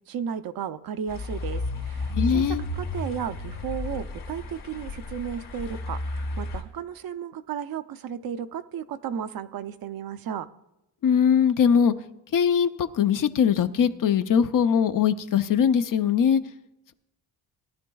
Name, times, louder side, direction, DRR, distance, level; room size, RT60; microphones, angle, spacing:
voice 1, 0.1-10.5, right 8 dB, 60° right, 12 dB, 0.6 m, -34 dB
sound 1, 1.1-6.6, left 2 dB, 80° left, 2.8 m, -32 dB
voice 2, 2.1-2.6 11.0-11.9 12.3-16.4, left 7 dB, 50° left, 11 dB, 0.6 m, -21 dB
18.0 x 11.0 x 2.3 m, 0.90 s
cardioid pair, 100°, 40 cm